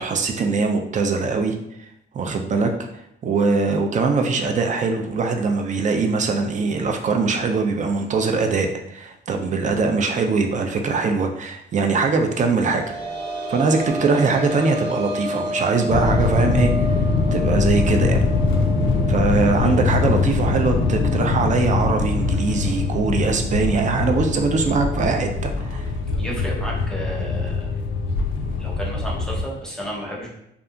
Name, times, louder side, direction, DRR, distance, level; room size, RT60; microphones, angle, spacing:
voice 1, 0.0-1.9 2.1-2.7 3.2-12.8 13.5-17.0 17.3-18.2 19.1-25.9, right 4 dB, 40° right, 4 dB, 0.4 m, -22 dB
sound 1, 12.3-23.8 24.1-24.2 25.8-25.9, equal, 75° right, 0.9 m, -32 dB
sound 2, 15.9-29.4, left 4 dB, 80° left, 0.4 m, -22 dB
voice 2, 26.2-27.7 28.5-30.3, equal, 5° left, -4 dB, 0.7 m, -32 dB
2.7 x 2.4 x 2.3 m, 0.78 s
cardioid pair, 90°, 20 cm